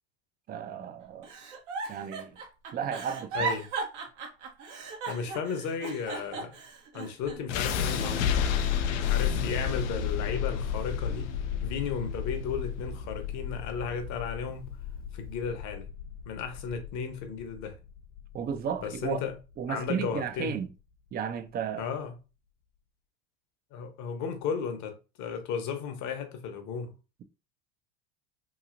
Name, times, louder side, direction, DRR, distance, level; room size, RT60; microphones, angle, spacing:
voice 1, 0.5-1.3 1.9-2.4 2.7-3.5 18.3-19.2 19.6-20.7 21.1-21.8, right 8 dB, 25° right, 0.4 m, -33 dB
Giggle, 1.2-7.6 8.0-9.0 9.4-10.5 11.1-11.4, right 4 dB, 75° right, 1.0 m, -37 dB
voice 2, 3.3-3.7 5.1-6.6 6.9-8.5 9.0-11.3 11.6-14.7 15.1-15.9 16.3-17.8 18.8-19.3 19.7-20.5 21.8-22.2 23.7-26.9, left 6 dB, 50° left, 0.9 m, -34 dB
sound 1, 7.5-19.5, left 8 dB, 80° left, 0.5 m, -32 dB
Guitar, 7.7-13.4, left 5 dB, 25° left, 0.5 m, -46 dB
3.0 x 2.7 x 2.5 m
hypercardioid pair, 75°, 36 cm